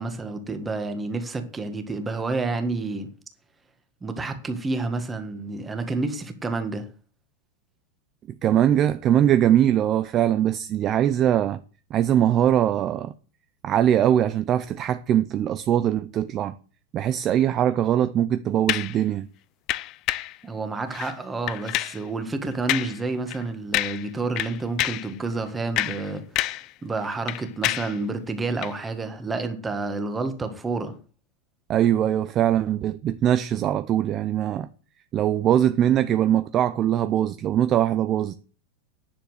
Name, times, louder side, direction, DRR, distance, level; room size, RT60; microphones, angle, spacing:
voice 1, 0.0-3.1 4.0-6.9 20.4-26.2 26.8-31.0, right 3 dB, 10° right, 1.7 m, -29 dB
voice 2, 8.4-11.6 11.9-13.1 13.6-16.5 16.9-19.3 31.7-34.7 35.1-38.4, right 10 dB, 30° right, 0.6 m, -21 dB
sound 1, 18.7-19.0 19.7-20.4 20.9-21.1 21.5-22.0 22.7-23.0 23.3-23.4 23.7-24.1 24.4-25.1 25.6-26.7 27.0-28.0 28.6-28.7, left 16 dB, 35° left, 0.6 m, -28 dB
10.5 x 7.1 x 8.0 m
supercardioid pair, 155°, 0 cm